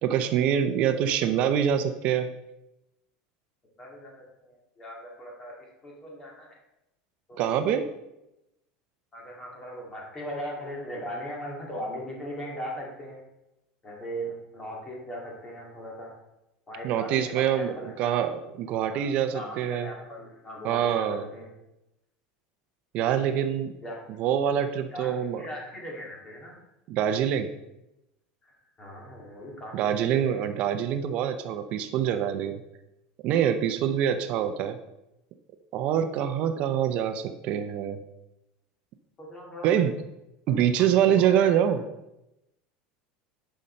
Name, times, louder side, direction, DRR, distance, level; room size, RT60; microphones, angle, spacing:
voice 1, 0.0-2.3 7.4-7.9 16.8-18.3 18.6-19.9 20.6-21.3 22.9-23.7 24.2-25.4 26.9-27.5 29.7-32.6 33.2-34.8 35.7-38.0 39.6-39.9 40.5-41.8, right 9 dB, 40° right, 9 dB, 0.6 m, -25 dB
voice 2, 3.8-6.6 7.3-7.8 9.1-13.2 13.8-16.1 16.7-18.2 18.8-19.0 19.3-21.5 23.4-23.5 23.8-24.0 24.9-26.6 28.4-30.4 39.2-39.8 41.1-41.6, equal, 20° left, -1 dB, 2.1 m, -39 dB
10.5 x 5.4 x 4.3 m, 0.91 s
cardioid pair, 170°, 3 cm